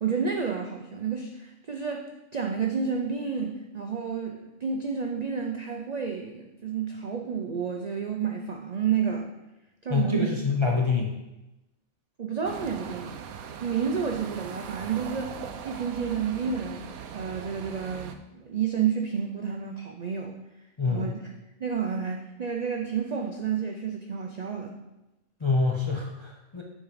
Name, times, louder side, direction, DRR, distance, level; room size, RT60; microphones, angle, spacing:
voice 1, 0.0-9.3 9.8-10.3 10.7-10.8 12.2-13.2 13.6-15.4 15.6-16.8 17.1-20.3 20.9-21.2 21.6-24.7, right 6 dB, 65° right, 2 dB, 0.4 m, -30 dB
voice 2, 9.9-11.1 20.8-21.1 25.4-26.6, left 4 dB, 35° left, -1 dB, 0.5 m, -26 dB
sound 1, 12.4-18.2, right 7 dB, 85° right, 1.0 m, -40 dB
7.2 x 3.7 x 5.0 m, 0.98 s
omnidirectional pair, 1.4 m